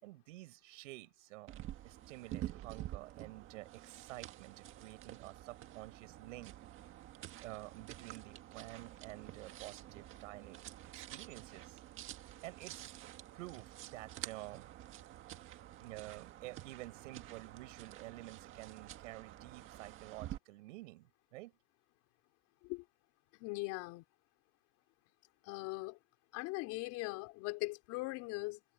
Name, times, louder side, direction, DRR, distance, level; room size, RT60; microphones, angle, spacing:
voice 1, 0.0-1.6 1.8-6.5 7.4-10.6 10.9-11.8 12.4-12.9 13.3-14.7 15.8-21.5, right 19 dB, 80° right, 5.9 m, -50 dB
sound 1, 1.5-20.4, right 13 dB, 35° right, 1.7 m, -49 dB
voice 2, 23.4-24.0 25.5-26.0 26.3-28.6, left 23 dB, 50° left, 3.9 m, -40 dB
supercardioid pair, 165°, 37 cm